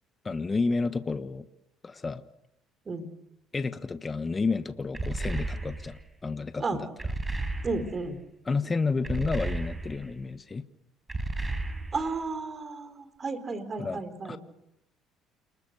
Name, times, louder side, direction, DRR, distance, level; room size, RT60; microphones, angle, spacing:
voice 1, 0.2-1.4 1.8-2.2 3.5-6.9 8.5-10.6 13.8-14.4, left 4 dB, 25° left, 11 dB, 1.3 m, -30 dB
sound 1, 4.9-6.0 7.0-8.1 9.0-10.1 11.1-12.2, right 2 dB, 20° right, 4.5 m, -33 dB
voice 2, 7.6-8.2 11.9-14.4, right 3 dB, 35° right, 11 dB, 4.2 m, -33 dB
29.5 x 20.5 x 6.7 m, 0.81 s
supercardioid pair, 80°, 0 cm